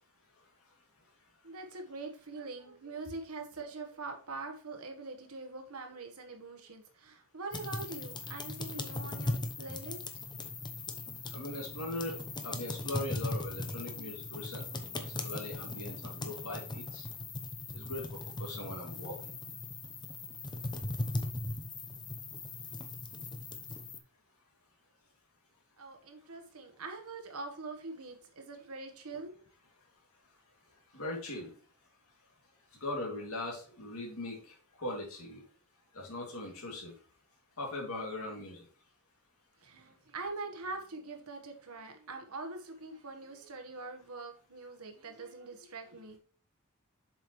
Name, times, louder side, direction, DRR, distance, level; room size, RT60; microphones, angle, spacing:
voice 1, 1.4-10.0 25.8-29.3 39.6-46.2, right 3 dB, 75° right, 4 dB, 1.4 m, -43 dB
sound 1, 7.5-24.0, left 2 dB, 20° left, 0.7 m, -39 dB
voice 2, 11.3-12.2 12.4-17.1 17.7-18.0 18.4-19.2 30.9-31.5 32.8-34.4 34.8-35.4 35.9-36.9 37.6-38.6, left 2 dB, 70° left, 0 dB, 2.5 m, -40 dB
7.3 x 5.1 x 3.1 m, 0.41 s
head